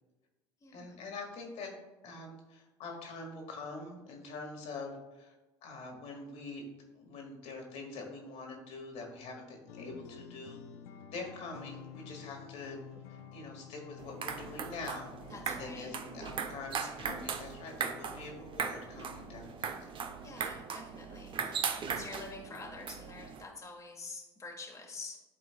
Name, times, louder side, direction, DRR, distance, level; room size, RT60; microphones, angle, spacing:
voice 1, 0.7-1.8 2.0-5.3 5.6-6.6 6.9-10.6 11.1-12.8 13.1-15.1 15.5-19.9, left 3 dB, 60° left, 1 dB, 1.7 m, -44 dB
sound 1, 9.7-20.1, left 9 dB, 80° left, 0.5 m, -52 dB
sound 2, 14.0-23.4, right 6 dB, 40° right, 0.7 m, -39 dB
voice 2, 15.3-15.9 20.2-25.2, left 3 dB, 25° left, -1 dB, 1.4 m, -47 dB
11.5 x 3.9 x 2.3 m, 1.1 s
hypercardioid pair, 70°, 13 cm